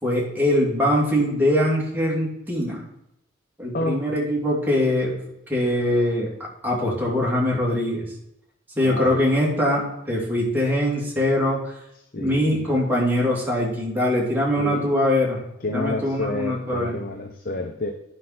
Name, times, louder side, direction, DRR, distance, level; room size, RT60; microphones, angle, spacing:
voice 1, 0.0-2.8 3.6-5.1 5.5-6.3 6.6-8.1 8.8-11.8 12.2-15.4 15.7-16.9, left 1 dB, 10° right, -4 dB, 2.7 m, -22 dB
voice 2, 3.7-4.1 8.8-9.2 12.1-12.7 14.6-14.9 15.6-17.9, left 2 dB, 50° left, 5 dB, 0.8 m, -29 dB
9.6 x 6.0 x 4.3 m, 0.82 s
head